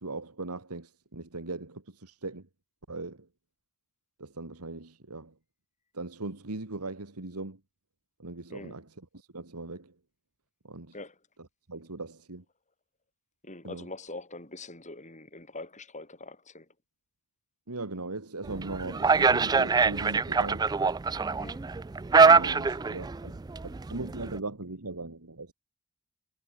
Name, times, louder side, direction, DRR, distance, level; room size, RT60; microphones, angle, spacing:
voice 1, 0.0-2.5 2.9-3.3 4.2-5.3 5.9-7.6 8.2-8.9 9.1-9.9 10.6-10.9 11.7-12.4 13.6-13.9 17.7-20.7 22.2-25.5, right 2 dB, 90° right, 2.0 m, -39 dB
voice 2, 13.4-16.7 21.3-21.7, left 2 dB, 35° left, 7.9 m, -43 dB
sound 1, 18.4-24.4, right 4 dB, 15° right, 0.3 m, -24 dB
head